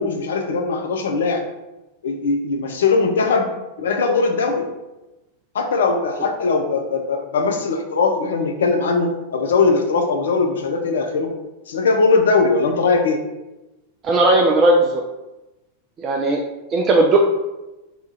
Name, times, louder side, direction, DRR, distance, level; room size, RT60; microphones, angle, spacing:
voice 1, 0.0-1.4 2.0-3.5 3.8-4.7 5.5-11.3 11.7-13.2, left 4 dB, 65° left, 4 dB, 0.4 m, -20 dB
voice 2, 14.0-15.0 16.0-16.4 16.7-17.2, right 2 dB, 30° right, 0 dB, 0.4 m, -16 dB
2.8 x 2.3 x 4.0 m, 1.0 s
figure-of-eight pair, 90°, 0 cm